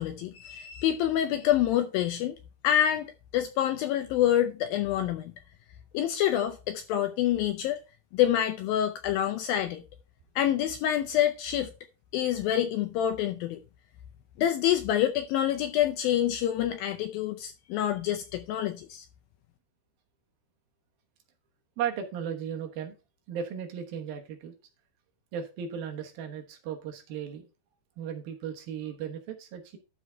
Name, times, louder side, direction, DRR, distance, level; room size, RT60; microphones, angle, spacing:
voice 1, 0.0-2.4 2.6-5.3 5.9-7.8 8.1-9.8 10.4-11.7 12.1-13.6 14.4-19.1, left 11 dB, 80° left, 2.1 m, -27 dB
voice 2, 21.8-22.9 23.3-24.5 25.3-27.5 28.0-29.8, right 8 dB, 70° right, 2.8 m, -36 dB
12.0 x 4.8 x 4.5 m
omnidirectional pair, 4.7 m